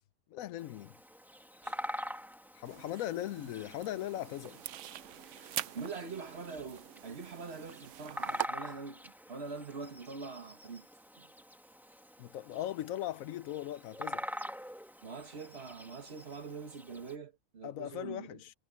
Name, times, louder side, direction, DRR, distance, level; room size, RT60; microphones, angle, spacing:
voice 1, 0.3-1.0 2.5-4.6 12.2-14.3 17.6-18.5, left 13 dB, 85° left, 1.0 m, -39 dB
Bird vocalization bird call bird song, 0.6-17.2, equal, ahead, 1.7 m, -46 dB
sound 1, 2.6-8.5, right 12 dB, 70° right, 0.9 m, -43 dB
voice 2, 5.7-10.9 11.2-11.3 15.0-18.4, right 4 dB, 50° right, 1.7 m, -44 dB
omnidirectional pair, 1.4 m